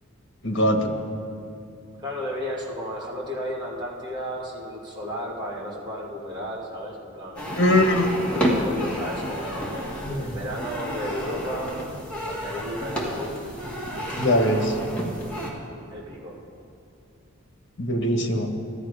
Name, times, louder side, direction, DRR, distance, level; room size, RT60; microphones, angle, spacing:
voice 1, 0.4-1.0 7.5-8.2 10.1-10.4 14.2-14.8 17.8-18.5, left 1 dB, 55° left, 3 dB, 1.5 m, -22 dB
voice 2, 2.0-7.6 8.3-11.7 12.3-13.4 15.9-16.4, equal, 20° right, -5 dB, 2.3 m, -33 dB
sound 1, 7.4-15.5, equal, 5° left, 1.9 m, -30 dB
14.5 x 12.0 x 5.0 m, 2.7 s
head